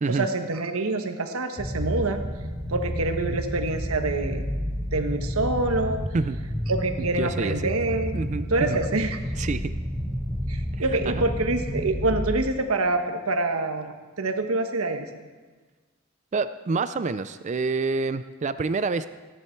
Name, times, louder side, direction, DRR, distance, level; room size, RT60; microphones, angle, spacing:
voice 1, 0.1-2.2 2.7-4.4 4.9-6.0 6.7-8.2 8.5-9.2 10.5-15.1, right 2 dB, 90° right, 6 dB, 1.2 m, -26 dB
sound 1, 1.6-12.3, equal, 5° left, 1.5 m, -30 dB
voice 2, 7.0-7.7 8.1-8.8 9.4-9.7 10.7-11.3 16.3-19.1, right 4 dB, 35° right, 12 dB, 0.4 m, -28 dB
16.0 x 10.5 x 4.6 m, 1.4 s
head